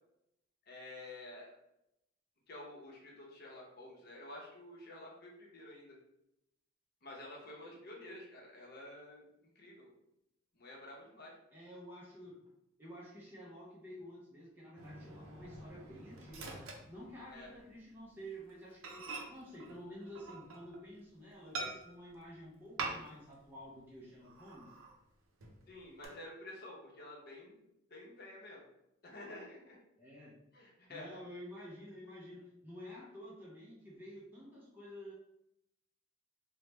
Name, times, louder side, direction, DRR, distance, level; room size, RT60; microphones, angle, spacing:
voice 1, 0.7-1.6 2.5-6.0 7.0-9.3 9.5-9.9 10.5-11.3 17.3-17.5 25.7-27.6 27.9-28.7 29.0-29.8 30.5-31.1, left 1 dB, 45° left, -3 dB, 0.7 m, -50 dB
voice 2, 11.5-12.4 12.8-24.7 30.0-30.4 30.9-35.1, equal, 10° right, -5 dB, 0.4 m, -50 dB
Microwave oven, 14.8-17.6 18.0-18.2 18.5-18.6 18.8-20.9 21.5-22.2 22.8-23.4 23.6-23.7 24.2-25.0 25.4-26.1, right 3 dB, 75° right, 0.5 m, -45 dB
3.1 x 2.1 x 3.1 m, 0.84 s
head